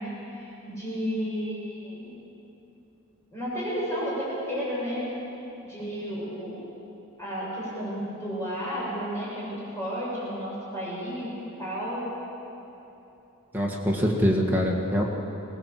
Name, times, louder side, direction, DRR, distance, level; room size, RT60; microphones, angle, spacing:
voice 1, 0.0-2.1 3.3-5.0 5.6-6.6 7.2-11.3 11.6-12.0, equal, 10° left, -8 dB, 7.2 m, -32 dB
voice 2, 13.5-15.0, equal, 10° right, -2 dB, 1.8 m, -24 dB
23.0 x 19.0 x 7.6 m, 3.0 s
head